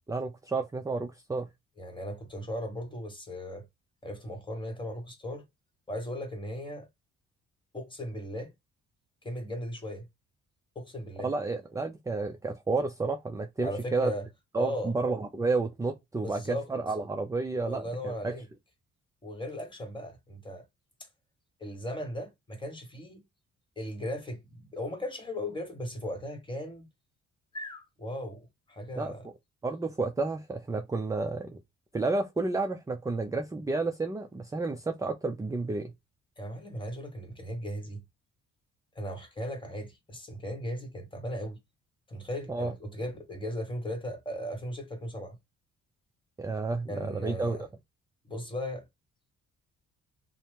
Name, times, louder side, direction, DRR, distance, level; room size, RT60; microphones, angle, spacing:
voice 1, 0.1-1.5 11.2-14.1 14.5-18.4 29.0-29.1 29.6-31.6 31.9-35.9 42.5-42.7 46.4-47.6, right 3 dB, 10° right, 0.4 m, -31 dB
voice 2, 1.8-3.7 4.0-5.4 5.9-6.9 7.7-8.5 9.2-10.1 10.7-11.3 13.6-14.3 14.5-14.9 16.2-16.7 17.7-18.5 19.2-20.6 21.6-23.2 23.8-26.9 27.5-29.3 36.4-38.0 38.9-41.6 42.1-45.4 46.9-47.7 48.2-48.9, equal, 15° left, 1.1 m, -37 dB
2.8 x 2.0 x 3.3 m
cardioid pair, 90°, 30 cm